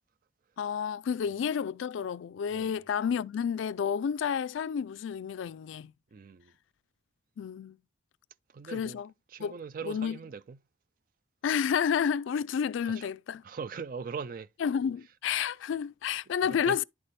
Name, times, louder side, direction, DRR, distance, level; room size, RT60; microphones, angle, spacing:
voice 1, 0.6-5.9 7.4-7.8 8.6-9.1 9.4-9.6 9.9-10.2 11.4-13.4 14.6-16.8, left 7 dB, 70° left, 0.3 m, -30 dB
voice 2, 6.1-6.5 8.5-9.0 9.3-10.6 13.0-13.1 13.4-14.5 16.7-16.8, right 5 dB, 45° right, 0.3 m, -40 dB
10.5 x 4.1 x 3.2 m
head